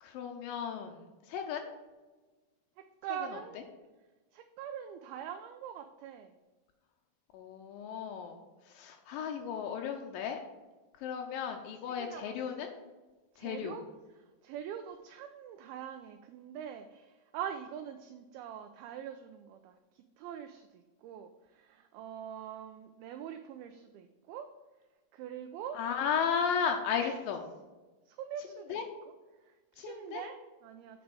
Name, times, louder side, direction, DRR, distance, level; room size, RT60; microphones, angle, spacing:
voice 1, 0.0-1.7 7.3-10.4 11.0-12.7 13.4-13.8 25.7-27.4 28.7-28.8 29.8-30.2, left 7 dB, 90° left, 3 dB, 2.0 m, -35 dB
voice 2, 2.8-3.6 4.3-6.3 11.3-12.7 13.3-24.5 25.1-25.8 27.0-27.6 28.1-28.8 29.4-31.0, right 9 dB, 85° right, 7 dB, 2.2 m, -44 dB
8.6 x 5.1 x 4.7 m, 1.2 s
omnidirectional pair, 4.8 m